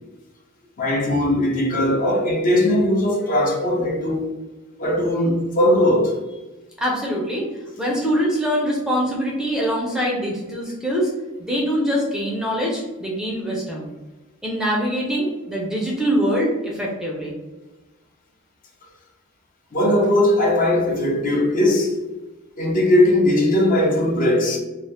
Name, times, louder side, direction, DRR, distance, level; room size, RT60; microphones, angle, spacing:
voice 1, 0.8-4.3 4.8-6.2 19.7-22.0 22.6-24.6, left 1 dB, 40° left, 0.6 m, -19 dB
voice 2, 6.8-7.5 7.8-11.1 11.4-13.9 14.4-17.3, equal, 5° right, 0.5 m, -23 dB
2.7 x 2.0 x 3.3 m
head